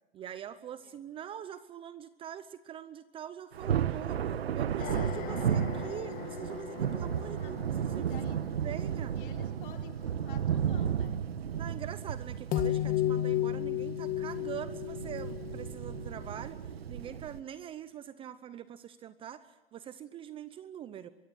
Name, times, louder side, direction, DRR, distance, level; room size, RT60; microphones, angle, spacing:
voice 1, 0.1-8.1 8.6-9.2 11.5-21.1, right 10 dB, 15° right, 15 dB, 0.7 m, -43 dB
Thunder, 3.5-17.4, right 9 dB, 80° right, 1.3 m, -34 dB
sound 1, 4.8-9.1 12.5-16.4, left 12 dB, 25° left, 2.0 m, -35 dB
voice 2, 7.2-7.5 7.9-8.4 9.2-11.2 18.5-18.6, left 10 dB, 55° left, 3 dB, 3.9 m, -51 dB
23.5 x 22.0 x 7.8 m, 1.1 s
hypercardioid pair, 135°, 31 cm